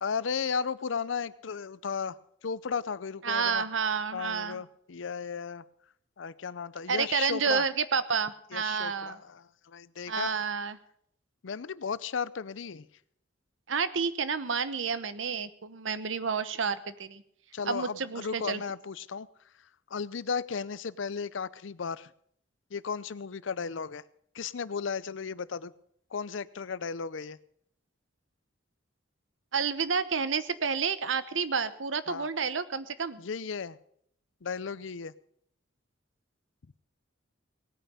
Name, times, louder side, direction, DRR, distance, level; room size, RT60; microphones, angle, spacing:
voice 1, 0.0-3.6 4.1-5.6 6.2-7.6 8.5-10.4 11.4-12.9 17.5-19.3 19.6-22.1 22.7-24.0 24.3-25.7 26.1-27.4 32.1-32.3 33.2-33.8 34.4-35.1, left 6 dB, 80° left, 18 dB, 0.6 m, -35 dB
voice 2, 3.2-4.6 6.9-9.2 10.1-10.8 13.7-17.2 17.6-18.6 29.5-33.2, right 5 dB, 80° right, 14 dB, 1.0 m, -30 dB
18.5 x 9.1 x 6.6 m, 0.68 s
head